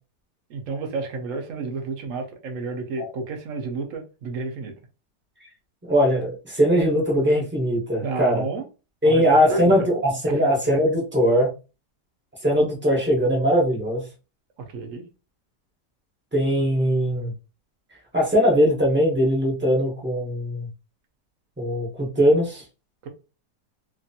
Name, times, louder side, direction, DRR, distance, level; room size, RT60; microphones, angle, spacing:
voice 1, 0.5-4.8 8.0-8.7 9.0-9.9 10.3-10.4 14.6-15.1 23.0-23.1, right 3 dB, 60° right, 0.9 m, -31 dB
voice 2, 5.9-8.4 9.0-11.5 12.4-14.0 16.3-17.3 18.1-20.7 21.6-22.6, equal, 10° right, 0.7 m, -20 dB
2.9 x 2.5 x 2.7 m
omnidirectional pair, 1.8 m